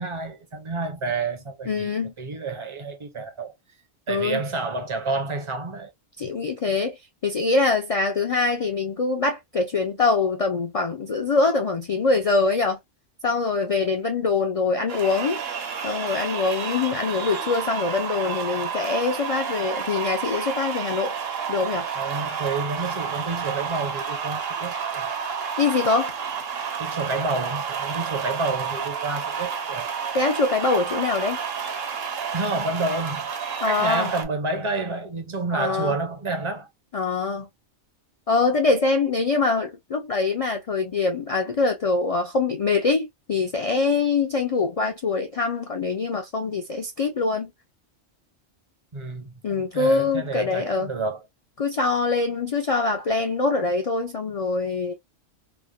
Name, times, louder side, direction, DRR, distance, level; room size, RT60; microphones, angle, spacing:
voice 1, 0.0-1.9 2.2-3.5 4.1-5.9 21.9-25.1 26.8-29.9 32.3-33.3 33.6-36.7 48.9-51.2, right 3 dB, 35° right, 0.5 m, -29 dB
voice 2, 1.7-2.1 4.1-4.4 6.2-12.8 13.2-15.4 15.8-21.2 21.5-21.9 25.6-26.1 30.1-31.4 33.6-34.1 35.5-36.0 36.9-37.5 38.3-47.5 49.4-50.9 51.6-54.9, left 3 dB, 65° left, 0.3 m, -24 dB
sound 1, 14.9-34.3, right 6 dB, 60° right, 0.9 m, -30 dB
3.2 x 2.0 x 2.3 m
omnidirectional pair, 1.2 m